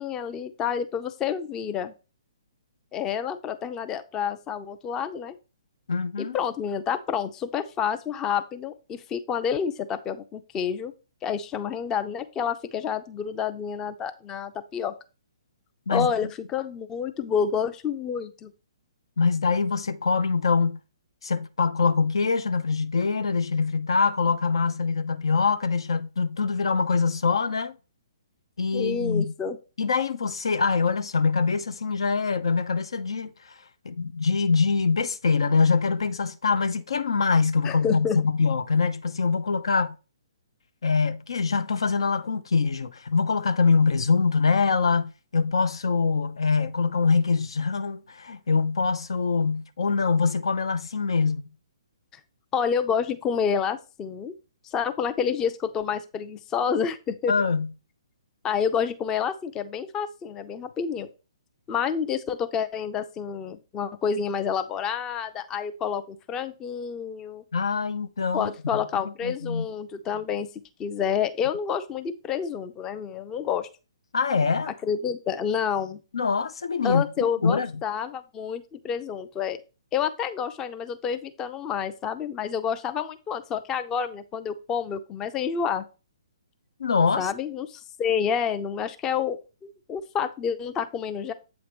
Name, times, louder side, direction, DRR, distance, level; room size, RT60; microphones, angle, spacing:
voice 1, 0.0-1.9 2.9-5.4 6.2-10.9 11.2-14.9 15.9-18.5 28.7-29.6 37.6-38.2 52.5-54.3 54.6-57.3 58.4-61.1 61.7-67.4 68.3-70.5 70.8-73.7 74.8-76.0 76.8-79.6 79.9-85.8 87.2-91.3, left 7 dB, 20° left, 0.5 m, -29 dB
voice 2, 5.9-6.4 15.9-16.1 19.2-20.8 21.2-27.7 28.6-29.3 29.8-33.5 33.8-40.0 40.8-51.4 57.3-57.7 67.5-69.7 74.1-74.7 76.1-77.7 86.8-87.3, left 4 dB, 65° left, 0.5 m, -24 dB
8.0 x 3.0 x 5.1 m
figure-of-eight pair, 130°, 3 cm